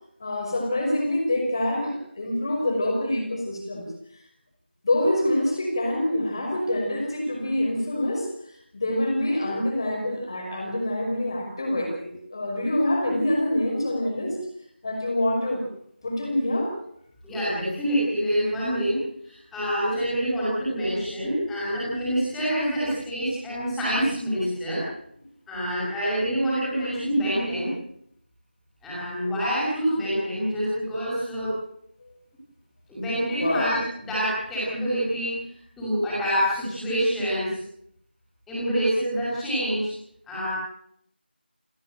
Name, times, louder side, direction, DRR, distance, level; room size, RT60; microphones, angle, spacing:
voice 1, 0.2-3.9 4.8-8.3 8.7-14.4 14.8-15.6 16.0-16.7 32.0-32.1 33.4-33.7, left 1 dB, 25° left, 2 dB, 5.6 m, -26 dB
voice 2, 17.2-24.8 25.5-27.7 28.8-31.6 32.9-35.4 35.8-37.6 38.5-39.9 40.3-40.5, equal, ahead, -9 dB, 6.0 m, -26 dB
29.5 x 12.0 x 9.3 m, 0.71 s
figure-of-eight pair, 175°, 6 cm